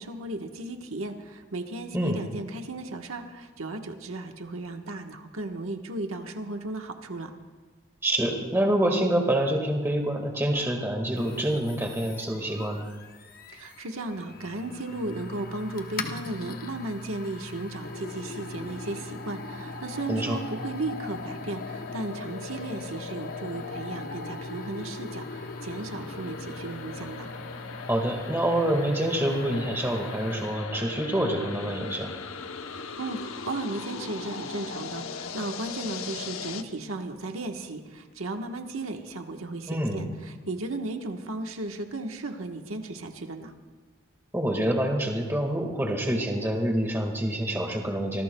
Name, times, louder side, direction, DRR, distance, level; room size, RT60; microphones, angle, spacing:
voice 1, 0.0-7.3 13.5-27.3 33.0-43.5, right 2 dB, 85° right, 4 dB, 1.3 m, -35 dB
voice 2, 8.0-12.9 20.1-20.4 27.9-32.1 39.7-40.0 44.3-48.2, right 1 dB, 10° right, 2 dB, 1.7 m, -26 dB
sound 1, 11.1-30.7, left 3 dB, 45° left, 0.9 m, -42 dB
sound 2, 17.8-36.6, left 4 dB, 90° left, 0.9 m, -39 dB
25.5 x 19.5 x 2.3 m, 1.4 s
head